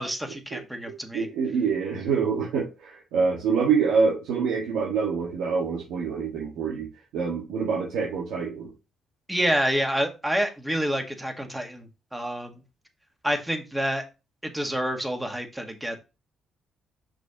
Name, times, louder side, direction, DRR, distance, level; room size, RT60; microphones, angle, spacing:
voice 1, 0.0-1.3 9.3-12.6 13.2-14.0 14.4-16.0, equal, 5° right, 5 dB, 1.8 m, -28 dB
voice 2, 1.1-6.9 7.1-8.7, right 5 dB, 85° right, -3 dB, 1.8 m, -26 dB
6.3 x 6.2 x 3.0 m, 0.27 s
cardioid pair, 90°, 0 cm